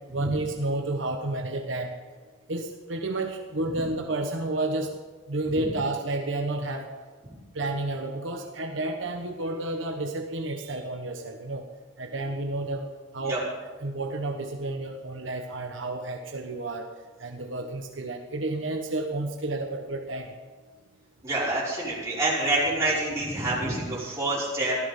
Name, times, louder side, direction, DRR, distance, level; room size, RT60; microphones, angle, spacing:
voice 1, 0.1-2.0 2.5-4.9 5.3-6.9 7.5-11.6 12.0-12.9 13.1-13.4 13.8-16.9 17.2-20.3, right 2 dB, 70° right, 3 dB, 1.2 m, -31 dB
voice 2, 21.2-24.8, right 2 dB, 15° right, -8 dB, 5.7 m, -27 dB
15.5 x 12.5 x 5.5 m, 1.4 s
head